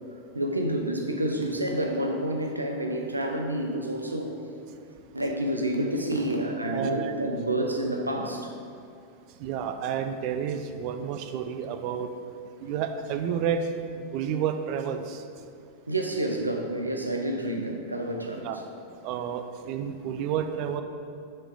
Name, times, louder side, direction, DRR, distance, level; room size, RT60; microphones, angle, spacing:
voice 1, 0.3-4.4 5.1-8.5 12.6-12.7 15.9-18.6, right 1 dB, 85° right, 3 dB, 0.6 m, -29 dB
voice 2, 6.7-7.1 9.4-12.1 12.6-13.7 14.0-15.2 18.4-18.6 19.0-20.8, right 8 dB, 45° right, 7 dB, 0.4 m, -30 dB
6.4 x 4.5 x 3.9 m, 2.5 s
figure-of-eight pair, 90°, 0 cm